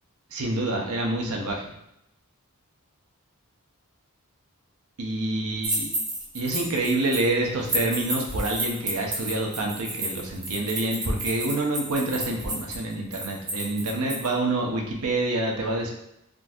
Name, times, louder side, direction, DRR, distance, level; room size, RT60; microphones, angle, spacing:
voice 1, 0.3-1.7 5.0-5.9 6.3-15.9, right 2 dB, 75° right, 0 dB, 0.7 m, -27 dB
sound 1, 5.6-7.3 7.6-14.3, right 1 dB, 20° right, 0.6 m, -31 dB
3.7 x 2.6 x 2.4 m, 0.80 s
head